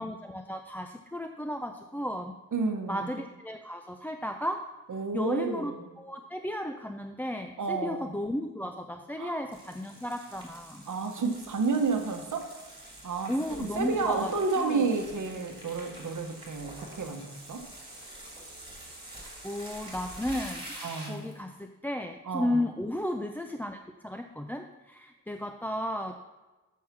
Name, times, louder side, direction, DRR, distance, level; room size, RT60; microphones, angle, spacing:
voice 1, 0.0-2.3 2.9-4.7 5.1-10.9 13.3-14.9 19.4-26.2, left 1 dB, 5° left, 5 dB, 0.3 m, -34 dB
voice 2, 2.5-3.1 4.9-5.9 7.6-8.1 9.2-9.4 10.9-12.5 13.0-13.3 13.6-17.7 20.8-21.2 22.3-22.7, right 4 dB, 70° right, 5 dB, 1.0 m, -31 dB
sound 1, 9.5-21.4, right 1 dB, 15° right, 2.7 m, -46 dB
7.2 x 6.3 x 5.7 m, 1.2 s
wide cardioid pair, 110°, 31 cm